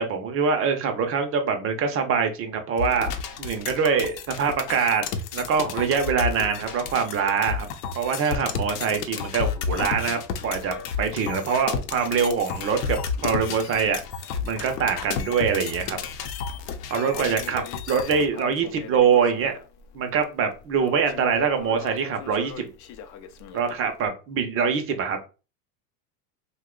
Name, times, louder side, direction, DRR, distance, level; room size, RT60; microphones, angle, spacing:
voice 1, 0.0-3.1 3.4-5.1 5.3-7.7 7.9-14.0 14.4-16.0 16.9-19.5 19.9-22.7 23.5-25.2, right 6 dB, 30° right, 6 dB, 0.5 m, -24 dB
sound 1, 2.8-18.3, left 6 dB, 75° left, 0.7 m, -32 dB
Crackle, 17.1-24.1, left 8 dB, 40° left, 0.4 m, -41 dB
2.7 x 2.2 x 3.7 m, 0.33 s
supercardioid pair, 125°, 48 cm